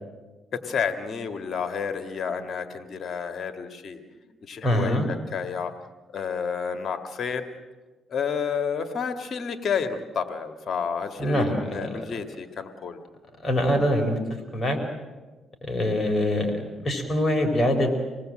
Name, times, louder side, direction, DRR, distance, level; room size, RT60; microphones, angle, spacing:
voice 1, 0.5-4.0 4.5-5.7 6.1-7.4 8.1-13.0, left 6 dB, 55° left, 8 dB, 1.7 m, -30 dB
voice 2, 4.6-5.1 11.2-12.0 13.4-14.2 14.5-14.8 15.6-17.9, left 1 dB, 30° left, 3 dB, 4.4 m, -24 dB
27.0 x 19.0 x 7.6 m, 1.3 s
cardioid pair, 90°, 0 cm